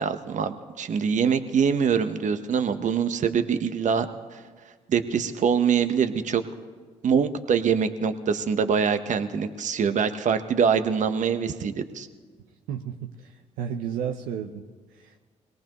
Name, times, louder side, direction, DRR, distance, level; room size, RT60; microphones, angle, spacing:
voice 1, 0.0-4.1 4.3-4.4 4.9-6.4 7.0-12.1, right 6 dB, 55° right, 9 dB, 1.1 m, -24 dB
voice 2, 12.7-14.6 14.9-15.1, right 8 dB, 80° right, 4 dB, 0.7 m, -33 dB
22.0 x 18.0 x 3.1 m, 1.5 s
hypercardioid pair, 50°, 15 cm